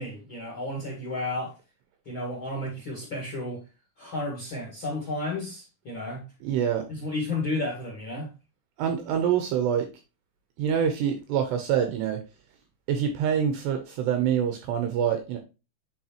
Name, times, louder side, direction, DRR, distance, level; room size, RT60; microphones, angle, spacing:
voice 1, 0.0-1.5 2.0-3.6 4.0-6.2 6.9-8.3, left 2 dB, 50° left, 1.5 m, -32 dB
voice 2, 6.4-6.8 8.8-9.9 10.6-12.2 12.9-15.4, right 8 dB, 80° right, 2.4 m, -25 dB
9.7 x 4.8 x 3.0 m
omnidirectional pair, 6.0 m